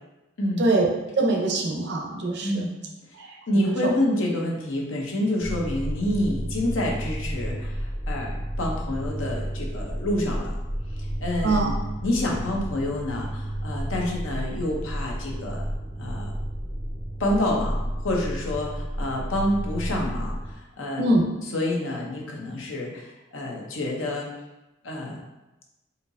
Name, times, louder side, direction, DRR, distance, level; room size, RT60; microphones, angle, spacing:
voice 1, 0.6-0.9 1.2-2.6 3.1-3.4 11.4-11.7 21.0-21.2, right 2 dB, 55° right, 1 dB, 0.6 m, -23 dB
voice 2, 2.4-2.7 3.5-10.6 10.9-11.7 12.0-15.7 16.0-16.3 17.2-17.8 18.0-21.1 21.5-24.3 24.8-25.2, left 1 dB, 70° left, -1 dB, 0.8 m, -28 dB
sound 1, 5.4-20.5, equal, 10° right, 0.4 m, -31 dB
4.3 x 2.8 x 2.6 m, 1.0 s
head